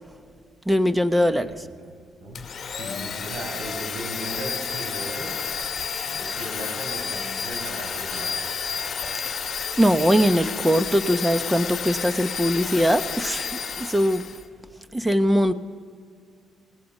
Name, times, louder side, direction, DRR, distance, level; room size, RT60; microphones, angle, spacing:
voice 1, 0.7-1.6 9.3-9.4 9.8-14.2 14.9-15.5, equal, 10° right, 11 dB, 1.1 m, -21 dB
voice 2, 1.3-1.9 2.2-2.4 2.7-5.3 6.0-8.4, right 1 dB, 70° right, 2 dB, 6.4 m, -37 dB
Domestic sounds home sounds, 2.4-14.5, left 6 dB, 40° left, 2.0 m, -31 dB
28.0 x 18.0 x 5.5 m, 2.1 s
cardioid pair, 90°, 0 cm